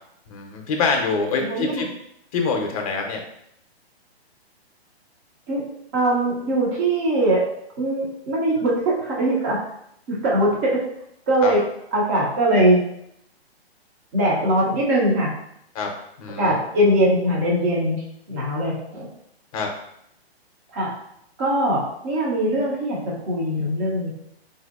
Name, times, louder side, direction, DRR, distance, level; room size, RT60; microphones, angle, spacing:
voice 1, 0.3-1.9 2.3-3.2 11.4-11.5 15.7-15.9 16.2-16.6 19.5-19.7, left 4 dB, 35° left, 2 dB, 0.6 m, -25 dB
voice 2, 1.5-1.9 5.5-5.7 5.9-9.6 10.1-10.9 11.3-12.9 14.1-15.4 16.4-19.1 20.7-21.0 21.4-24.1, right 1 dB, 15° right, -4 dB, 0.4 m, -21 dB
3.7 x 2.6 x 2.4 m, 0.75 s
hypercardioid pair, 150°, 32 cm